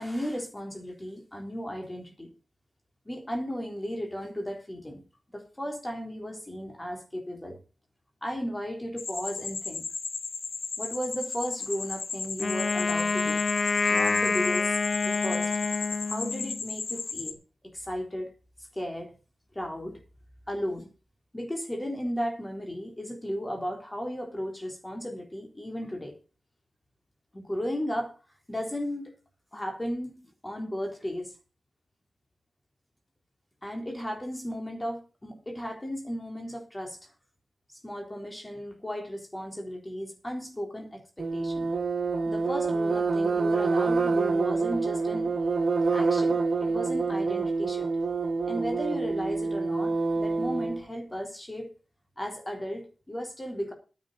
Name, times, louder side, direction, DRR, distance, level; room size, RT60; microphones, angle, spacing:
voice 1, 0.0-2.3 3.1-5.0 5.3-7.6 8.2-9.8 10.8-13.4 13.9-15.5 16.1-17.4 17.7-18.3 18.7-19.1 19.5-20.0 20.5-20.9 21.3-26.1 27.3-28.1 28.5-29.1 29.5-31.3 33.6-37.1 37.7-41.7 42.3-45.3 45.9-47.9 48.5-51.7 52.2-53.7, equal, 20° left, 3 dB, 3.7 m, -35 dB
sound 1, 9.0-17.3, left 4 dB, 80° left, 1.5 m, -35 dB
Wind instrument woodwind instrument, 12.4-16.6, left 4 dB, 55° left, 0.8 m, -27 dB
sound 2, 41.2-50.8, right 4 dB, 70° right, 1.9 m, -27 dB
9.9 x 8.7 x 6.7 m, 0.34 s
cardioid pair, 55°, 0 cm